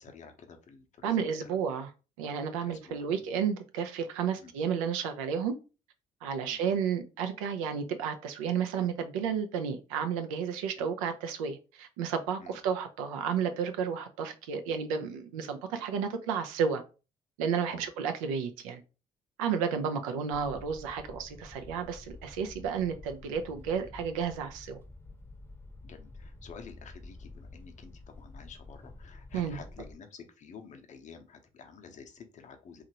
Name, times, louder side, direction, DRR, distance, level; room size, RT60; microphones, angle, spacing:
voice 1, 0.0-1.5 2.6-3.0 4.4-4.5 6.5-6.7 12.4-12.6 17.7-17.9 25.8-32.8, left 6 dB, 45° left, 5 dB, 0.7 m, -50 dB
voice 2, 1.0-1.9 2.2-5.5 6.2-16.8 17.4-18.8 19.4-24.8 29.3-29.6, right 7 dB, 75° right, 7 dB, 0.5 m, -32 dB
sound 1, 20.3-30.0, left 2 dB, 15° left, 0.8 m, -49 dB
2.9 x 2.4 x 2.8 m, 0.32 s
hypercardioid pair, 45°, 17 cm